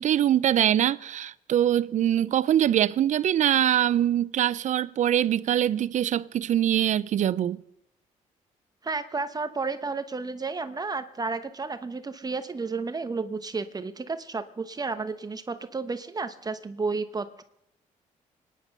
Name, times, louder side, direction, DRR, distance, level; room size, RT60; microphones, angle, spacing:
voice 1, 0.0-7.6, right 11 dB, 60° right, 0.6 m, -23 dB
voice 2, 8.8-17.4, right 4 dB, 30° right, 1.0 m, -32 dB
25.0 x 10.0 x 5.4 m
cardioid pair, 85°, 14 cm